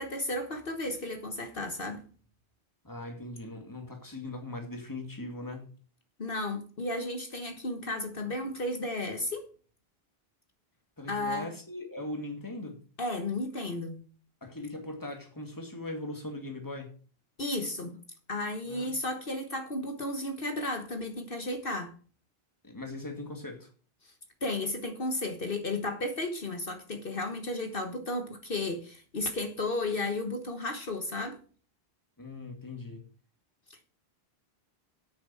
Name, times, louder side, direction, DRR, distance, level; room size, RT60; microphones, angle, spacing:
voice 1, 0.0-2.0 6.2-9.5 11.1-11.5 13.0-14.0 17.4-18.0 18.3-21.9 24.0-24.1 24.4-31.4, left 2 dB, 60° left, 1.6 m, -33 dB
voice 2, 2.8-5.7 11.0-12.8 14.4-16.9 18.7-19.0 22.6-23.7 32.2-33.1, left 2 dB, 20° left, 2.2 m, -40 dB
8.9 x 7.1 x 7.6 m
omnidirectional pair, 1.0 m